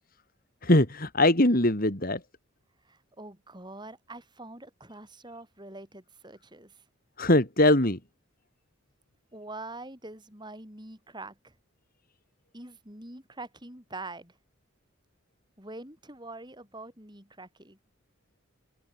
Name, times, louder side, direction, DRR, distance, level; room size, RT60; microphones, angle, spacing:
voice 1, 0.6-2.2 7.2-8.0, left 1 dB, 45° left, 3.2 m, -22 dB
voice 2, 2.8-6.8 9.3-11.5 12.5-14.4 15.6-17.8, right 2 dB, 20° right, 7.7 m, -44 dB
head